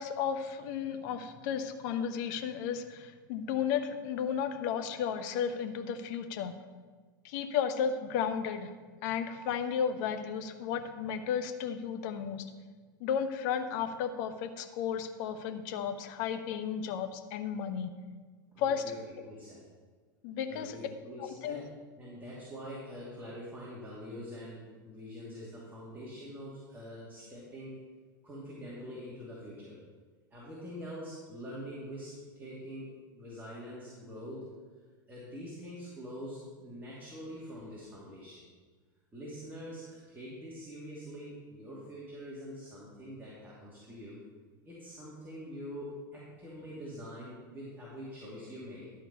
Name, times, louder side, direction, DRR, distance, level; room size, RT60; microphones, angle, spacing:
voice 1, 0.0-6.5 7.2-8.7 9.0-12.5 13.0-17.9 18.6-18.8 20.2-20.8 21.2-21.6, left 7 dB, 60° left, 8 dB, 1.0 m, -33 dB
voice 2, 18.5-19.0 19.2-19.6 20.5-21.7 22.0-27.8 28.2-29.8 30.3-34.5 35.1-38.4 39.1-44.2 44.6-48.9, equal, 15° right, -6 dB, 2.7 m, -44 dB
12.0 x 4.6 x 6.9 m, 1.5 s
hypercardioid pair, 90°, 12 cm